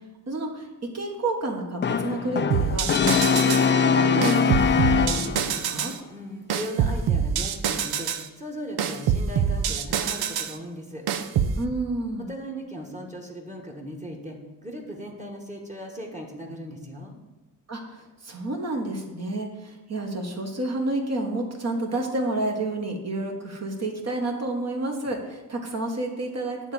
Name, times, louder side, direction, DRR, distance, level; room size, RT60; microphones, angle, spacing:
voice 1, 0.3-0.7 0.9-5.9 11.6-12.3 17.7-26.7, right 2 dB, 40° right, 1 dB, 1.4 m, -30 dB
Brass instrument, 1.8-5.6, left 6 dB, 30° left, 0.4 m, -22 dB
sound 1, 2.5-3.7 4.2-6.0 6.5-8.3 8.8-10.6 11.1-11.6, right 7 dB, 75° right, 0.7 m, -25 dB
voice 2, 6.1-11.0 12.3-17.1, equal, 20° right, 1 dB, 1.4 m, -38 dB
9.2 x 3.6 x 6.9 m, 1.1 s
cardioid pair, 85°, 38 cm